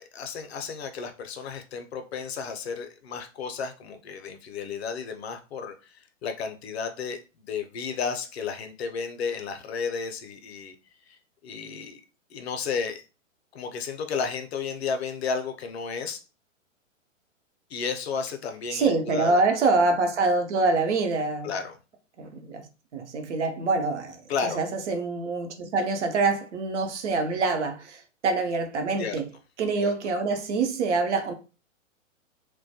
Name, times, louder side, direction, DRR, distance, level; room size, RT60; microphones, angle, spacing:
voice 1, 0.0-10.8 11.1-12.0 12.3-13.0 13.5-16.2 17.7-19.4 21.4-21.8 24.3-24.6 29.0-29.2 29.8-29.9, left 5 dB, 55° left, 0.5 m, -33 dB
voice 2, 18.7-21.5 22.2-22.7 22.9-29.2 29.6-31.3, right 3 dB, 60° right, 0.7 m, -25 dB
2.2 x 2.1 x 2.7 m
figure-of-eight pair, 120°, 39 cm